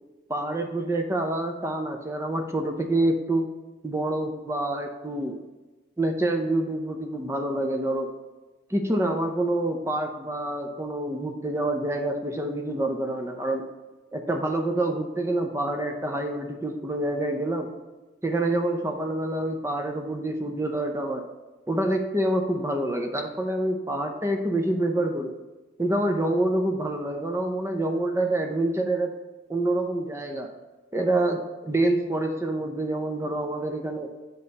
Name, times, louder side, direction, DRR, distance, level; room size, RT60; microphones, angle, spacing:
voice 1, 0.3-3.5 3.8-5.4 6.0-8.1 8.7-13.7 14.1-17.7 18.2-21.3 21.7-25.4 25.8-29.1 29.5-30.5 30.9-34.1, right 1 dB, 15° right, 4 dB, 0.5 m, -27 dB
8.2 x 5.3 x 2.9 m, 1.2 s
head